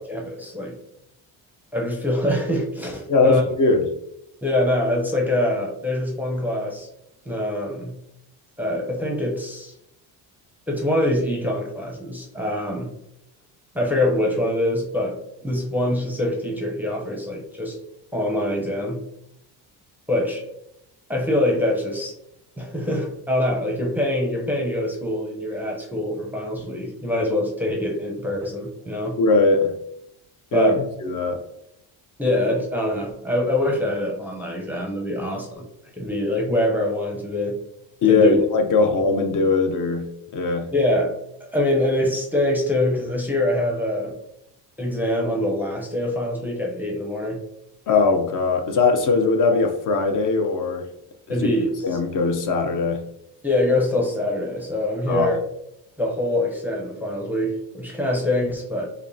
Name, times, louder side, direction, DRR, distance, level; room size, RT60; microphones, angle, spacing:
voice 1, 0.1-0.8 1.7-3.4 4.4-6.9 7.3-8.0 8.6-9.7 10.7-12.9 13.7-17.8 18.1-19.1 20.1-20.4 21.1-22.1 22.6-29.2 30.5-30.8 32.2-35.7 35.9-37.6 38.1-38.4 38.8-38.9 40.7-41.1 41.4-44.2 44.8-47.4 51.3-51.8 53.4-55.4 56.0-58.9, left 1 dB, 5° right, -1 dB, 0.6 m, -24 dB
voice 2, 3.1-3.8 29.2-29.7 30.5-30.7 31.0-31.4 38.0-40.7 47.9-50.8 51.3-51.5 51.8-53.0 55.1-55.3, left 4 dB, 45° left, 4 dB, 0.6 m, -20 dB
5.1 x 2.1 x 2.6 m, 0.78 s
cardioid pair, 115°, 44 cm